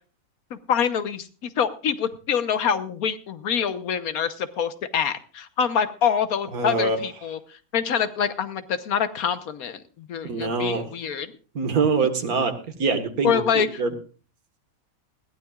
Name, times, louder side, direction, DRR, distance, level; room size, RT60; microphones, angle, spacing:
voice 1, 0.5-11.3 13.2-13.8, left 7 dB, 80° left, 11 dB, 1.5 m, -26 dB
voice 2, 6.5-7.0 10.2-10.8 11.6-12.5 12.8-13.9, right 4 dB, 90° right, 7 dB, 2.1 m, -24 dB
20.0 x 15.5 x 2.4 m, 0.38 s
omnidirectional pair, 1.5 m